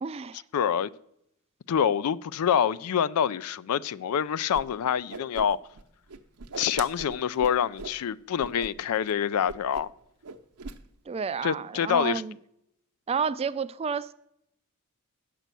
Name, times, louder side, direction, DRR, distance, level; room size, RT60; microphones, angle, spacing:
voice 1, 0.0-0.4 11.1-12.3 13.1-14.1, right 6 dB, 25° right, 0.3 m, -30 dB
voice 2, 0.5-0.9 1.7-5.6 6.6-9.9 11.4-12.2, left 8 dB, 80° left, 0.4 m, -26 dB
Whoosh swoosh swish, 4.5-4.6 4.9-5.8 6.1-8.0 8.4-8.7 8.9-9.1 9.5-10.0 10.2-10.8, right 4 dB, 80° right, 0.8 m, -40 dB
9.1 x 6.8 x 7.4 m
head